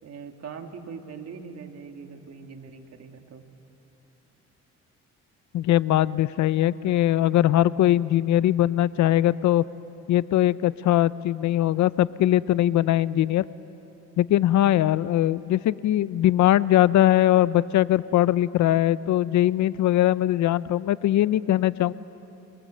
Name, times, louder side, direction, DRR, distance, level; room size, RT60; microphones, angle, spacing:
voice 1, 0.0-3.4, right 5 dB, 55° right, 5 dB, 2.2 m, -41 dB
voice 2, 5.5-9.6 10.1-13.4 14.2-21.9, left 13 dB, 70° left, 18 dB, 0.6 m, -21 dB
28.5 x 21.5 x 7.7 m, 2.9 s
cardioid pair, 90°, 30 cm